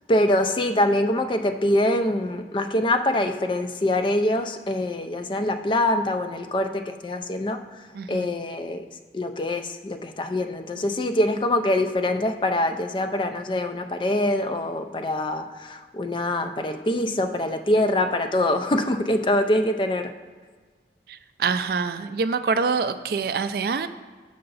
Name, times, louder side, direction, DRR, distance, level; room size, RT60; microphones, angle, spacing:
voice 1, 0.1-7.6 8.1-8.8 9.1-20.1, left 1 dB, 25° left, 7 dB, 0.3 m, -24 dB
voice 2, 7.9-8.3 21.4-23.9, right 5 dB, 55° right, 11 dB, 0.3 m, -25 dB
6.5 x 5.7 x 4.0 m, 1.5 s
head